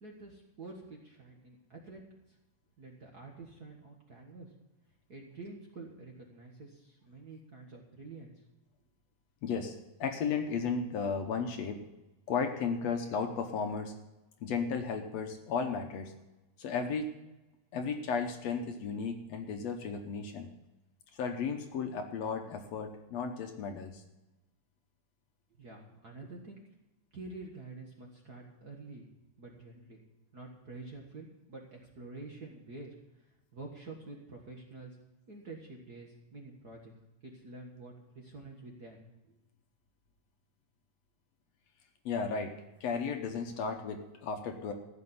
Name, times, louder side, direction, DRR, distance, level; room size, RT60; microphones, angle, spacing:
voice 1, 0.0-2.0 2.8-4.5 5.1-8.3 25.6-26.6 27.1-29.0 29.4-30.0 30.3-33.3 33.5-34.9 35.3-36.9 37.2-39.0 39.3-39.4, right 3 dB, 45° right, -1 dB, 1.5 m, -48 dB
voice 2, 9.4-11.8 12.3-13.9 14.4-16.1 16.6-17.1 17.7-20.5 21.1-24.0 42.1-42.5 42.8-44.7, left 5 dB, 65° left, 5 dB, 2.0 m, -34 dB
15.0 x 6.4 x 9.5 m, 1.0 s
omnidirectional pair, 3.5 m